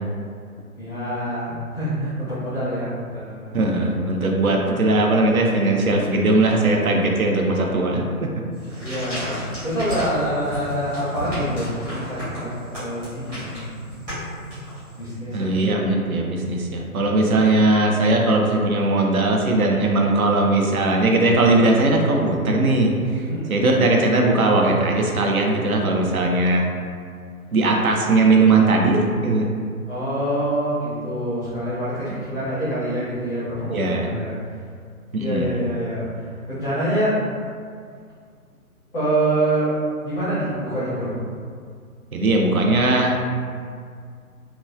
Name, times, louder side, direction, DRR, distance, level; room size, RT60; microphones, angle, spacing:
voice 1, 0.8-3.5 8.8-12.5 12.8-13.6 14.9-15.8 23.1-23.5 29.9-34.3 35.2-37.1 38.9-39.7 40.0-41.1, right 1 dB, ahead, -14 dB, 0.5 m, -26 dB
voice 2, 3.5-8.5 15.3-26.6 27.5-29.5 32.1-32.2 33.7-34.1 35.1-35.6 42.1-43.3, right 2 dB, 70° right, 1 dB, 0.6 m, -19 dB
sound 1, 8.5-15.1, equal, 15° right, 0.9 m, -32 dB
2.9 x 2.2 x 2.3 m, 2.2 s
figure-of-eight pair, 135°, 44 cm